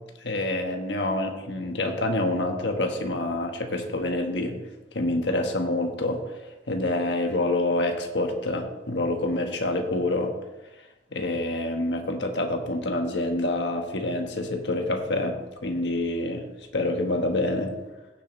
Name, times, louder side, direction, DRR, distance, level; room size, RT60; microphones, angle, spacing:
voice 1, 0.2-4.6 4.9-6.3 6.7-10.3 11.1-16.4 16.7-17.7, left 2 dB, 75° left, 4 dB, 1.4 m, -27 dB
16.0 x 7.4 x 3.2 m, 1.0 s
head